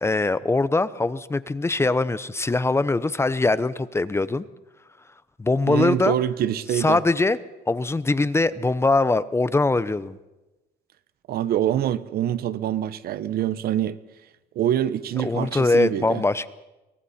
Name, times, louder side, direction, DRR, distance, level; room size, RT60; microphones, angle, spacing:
voice 1, 0.0-4.4 5.4-6.2 6.8-7.4 7.7-10.2 15.2-16.5, left 3 dB, 15° left, 0.8 m, -22 dB
voice 2, 5.7-7.0 11.3-14.0 14.5-16.2, right 11 dB, 65° right, 1.1 m, -25 dB
29.5 x 23.0 x 4.3 m
cardioid pair, 110°, 17 cm